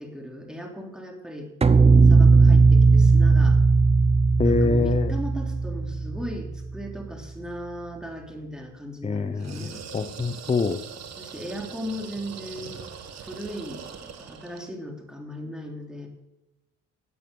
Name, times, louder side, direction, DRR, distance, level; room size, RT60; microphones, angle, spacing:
voice 1, 0.0-1.5 2.0-3.6 4.4-9.8 11.2-12.8 13.2-16.1, equal, ahead, 1 dB, 3.0 m, -37 dB
sound 1, 1.6-6.8, right 4 dB, 20° right, 0.7 m, -17 dB
voice 2, 4.4-5.1 9.0-9.7 9.9-10.8, left 4 dB, 20° left, 10 dB, 0.7 m, -24 dB
sound 2, 9.4-14.7, right 7 dB, 60° right, 1.7 m, -41 dB
13.5 x 8.4 x 6.8 m, 1.0 s
cardioid pair, 90°, 30 cm